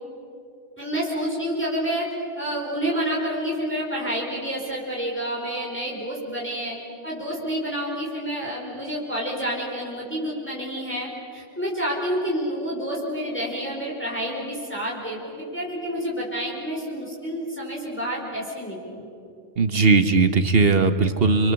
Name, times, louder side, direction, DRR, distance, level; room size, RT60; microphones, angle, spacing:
voice 1, 0.8-2.1 2.4-6.7 7.0-19.1, equal, 10° left, -4 dB, 4.9 m, -29 dB
voice 2, 19.6-21.5, right 4 dB, 50° right, 10 dB, 1.3 m, -18 dB
29.0 x 25.5 x 7.1 m, 2.7 s
omnidirectional pair, 1.3 m